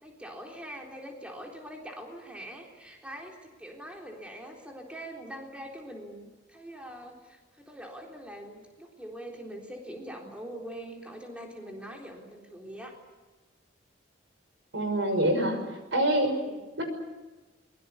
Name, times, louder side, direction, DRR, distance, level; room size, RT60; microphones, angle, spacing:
voice 1, 0.0-13.0 16.3-16.6, equal, 5° right, 0 dB, 3.8 m, -43 dB
voice 2, 14.7-15.6 15.9-16.3 16.8-16.9, right 1 dB, 75° right, 7 dB, 6.0 m, -25 dB
24.0 x 22.5 x 8.5 m, 1.2 s
head